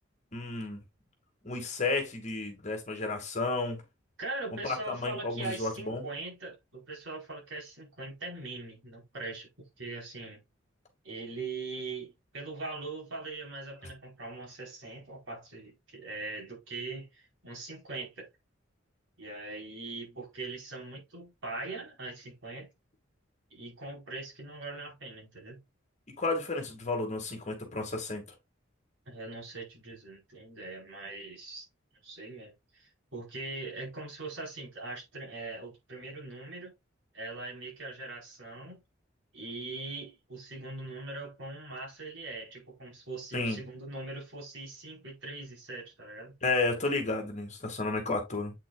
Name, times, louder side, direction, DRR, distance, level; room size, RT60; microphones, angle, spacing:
voice 1, 0.3-0.8 1.4-3.8 4.6-6.1 26.2-28.2 43.3-43.6 46.4-48.5, left 3 dB, 35° left, 2.2 m, -32 dB
voice 2, 4.2-10.4 11.0-18.3 19.2-22.7 23.5-25.6 29.1-31.6 32.0-36.7 37.1-38.8 39.3-46.4, right 3 dB, 70° right, 4.8 m, -41 dB
8.3 x 5.9 x 2.5 m
head